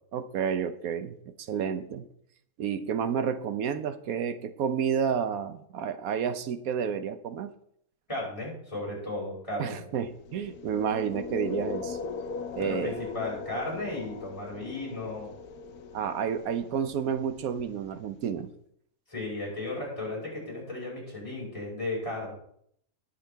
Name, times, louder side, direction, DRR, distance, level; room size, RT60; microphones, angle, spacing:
voice 1, 0.1-2.1 2.6-7.5 9.6-12.0 12.6-13.0 15.9-18.5, right 7 dB, 70° right, 11 dB, 1.1 m, -30 dB
voice 2, 8.1-9.8 12.6-15.3 19.1-22.3, left 2 dB, 20° left, -6 dB, 5.5 m, -35 dB
sound 1, 10.1-18.2, left 5 dB, 70° left, 1.3 m, -40 dB
19.5 x 6.5 x 3.4 m, 0.70 s
omnidirectional pair, 1.7 m